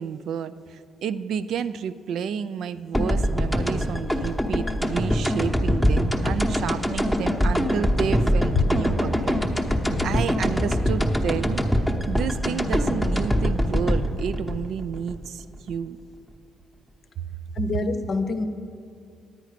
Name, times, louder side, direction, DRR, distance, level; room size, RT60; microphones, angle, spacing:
voice 1, 0.0-9.5 10.0-11.6 12.1-16.0 17.2-17.3, right 7 dB, 70° right, 14 dB, 0.4 m, -30 dB
sound 1, 2.9-15.8, equal, 5° right, 0.9 m, -23 dB
voice 2, 17.6-18.5, left 5 dB, 45° left, 9 dB, 0.7 m, -25 dB
10.0 x 9.2 x 5.0 m, 2.4 s
cardioid pair, 90°, 0 cm